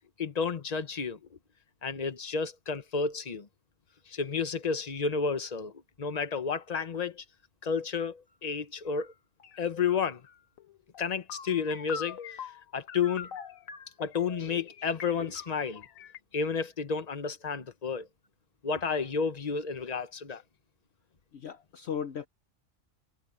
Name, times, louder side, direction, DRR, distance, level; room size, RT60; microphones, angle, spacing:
voice 1, 0.2-1.2 1.8-3.5 4.1-5.7 6.0-7.2 7.6-9.1 9.6-10.2 11.0-12.5 12.7-13.3 14.0-15.8 16.3-18.1 18.6-20.4, left 5 dB, 30° left, 1.2 m, -31 dB
sound 1, 8.8-9.1 9.4-16.2, left 7 dB, 85° left, 1.5 m, -44 dB
voice 2, 21.3-22.3, left 8 dB, 60° left, 0.9 m, -36 dB
omnidirectional pair, 1.4 m